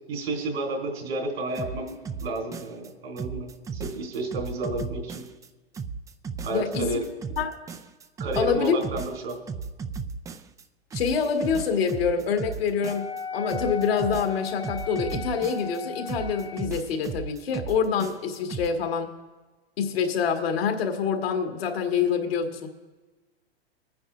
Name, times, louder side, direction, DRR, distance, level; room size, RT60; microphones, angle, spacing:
voice 1, 0.1-5.3 6.4-7.1 8.2-9.4, right 2 dB, 75° right, 2 dB, 3.6 m, -31 dB
sound 1, 1.5-2.9 3.2-5.5 5.7-10.6 10.9-13.2 13.5-15.8 16.1-18.7, right 5 dB, 10° right, 0.4 m, -35 dB
voice 2, 6.5-6.9 7.4-7.6 8.4-8.8 10.9-19.2 19.8-22.7, left 6 dB, 70° left, 4 dB, 1.9 m, -26 dB
Wind instrument woodwind instrument, 12.8-16.8, left 5 dB, 15° left, 0.7 m, -36 dB
25.5 x 9.6 x 2.5 m, 1.2 s
hypercardioid pair, 105°, 31 cm